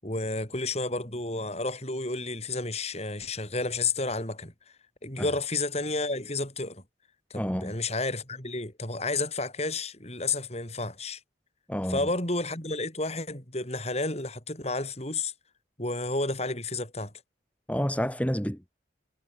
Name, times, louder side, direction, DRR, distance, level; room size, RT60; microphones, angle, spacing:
voice 1, 0.0-4.5 5.0-6.8 7.3-11.2 11.9-15.3 15.8-17.1, left 3 dB, 35° left, 7.8 m, -31 dB
voice 2, 7.3-7.7 11.7-12.0 17.7-18.7, equal, 5° left, 2.9 m, -29 dB
head